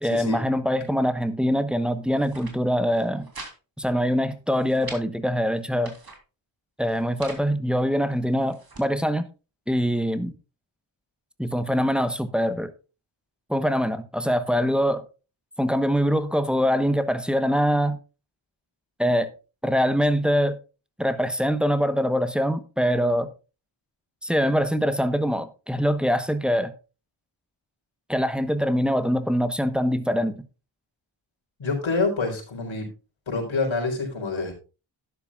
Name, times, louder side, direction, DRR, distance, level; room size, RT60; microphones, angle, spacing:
voice 1, 0.0-3.3 3.8-5.9 6.8-9.3 9.7-10.3 11.4-12.7 13.5-15.0 15.6-18.0 19.0-19.3 19.6-20.6 21.0-23.3 24.2-26.7 28.1-30.4, equal, ahead, 1.1 m, -23 dB
sound 1, 2.1-2.6 2.9-3.5 3.8-3.9 4.3-5.0 5.6-6.2 6.8-7.4 8.1-8.9, right 3 dB, 50° right, 3.5 m, -43 dB
voice 2, 31.6-32.9 33.3-34.5, left 3 dB, 80° left, 4.2 m, -26 dB
12.0 x 10.5 x 2.4 m
wide cardioid pair, 75°, 46 cm